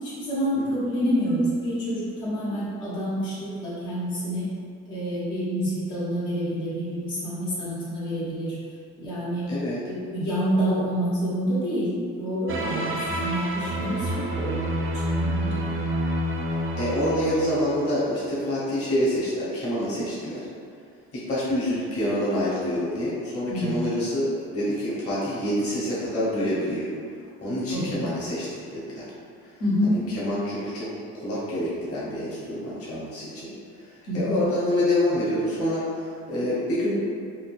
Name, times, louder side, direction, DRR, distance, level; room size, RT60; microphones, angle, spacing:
voice 1, 0.0-4.5 4.9-8.5 9.0-9.5 9.8-14.8 15.1-15.8 23.5-23.8 27.7-28.1 29.6-30.0 34.1-34.4, equal, 75° left, -10 dB, 1.2 m, -27 dB
voice 2, 9.5-9.8 12.7-12.9 16.8-20.4 21.1-26.9 27.4-29.1 29.8-30.9 31.1-33.5 34.1-37.0, left 1 dB, 45° left, -9 dB, 1.1 m, -27 dB
sound 1, 12.5-18.2, right 1 dB, 40° right, 0.4 m, -28 dB
3.7 x 2.2 x 2.5 m, 2.2 s
supercardioid pair, 80°, 33 cm